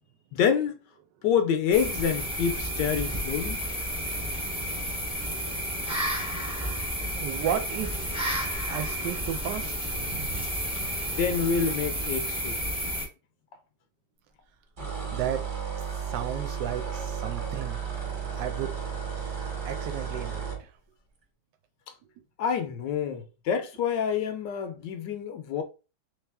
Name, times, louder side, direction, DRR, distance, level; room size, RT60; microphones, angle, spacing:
voice 1, 0.3-0.7 1.2-3.6 11.0-12.6 22.4-25.6, left 7 dB, 80° left, 1.3 m, -27 dB
sound 1, 1.7-13.1, equal, 5° right, 0.7 m, -31 dB
voice 2, 7.1-8.0 8.7-10.3 15.1-15.4 16.1-17.8 18.3-18.7 19.6-20.4, right 10 dB, 75° right, 1.2 m, -33 dB
sound 2, 14.8-20.6, right 7 dB, 30° right, 1.2 m, -33 dB
3.3 x 3.1 x 3.4 m
omnidirectional pair, 2.0 m